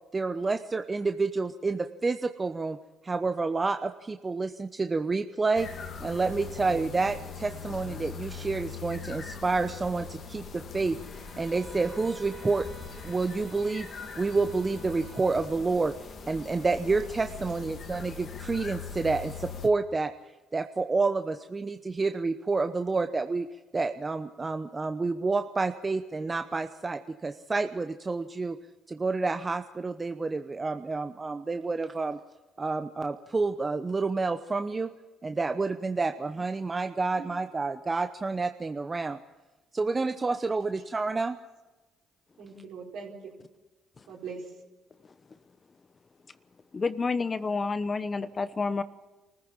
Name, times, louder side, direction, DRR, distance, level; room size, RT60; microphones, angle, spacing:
voice 1, 0.1-2.8 3.0-5.7 6.0-11.0 11.4-12.7 13.0-13.9 14.2-15.9 16.3-20.1 20.5-23.5 23.7-28.6 28.9-32.2 32.6-34.9 35.2-39.2 39.7-41.4, right 3 dB, 30° right, 8 dB, 0.8 m, -29 dB
sound 1, 5.6-19.7, left 6 dB, 55° left, 2.1 m, -41 dB
sound 2, 11.0-15.6, right 3 dB, 45° right, 2.8 m, -52 dB
voice 2, 17.3-17.8 37.1-37.3 42.4-43.3 44.1-44.5, right 5 dB, 70° right, -1 dB, 4.5 m, -42 dB
voice 3, 46.7-48.8, left 4 dB, 35° left, 13 dB, 1.0 m, -29 dB
24.0 x 14.5 x 7.4 m, 1.1 s
hypercardioid pair, 60°, 0 cm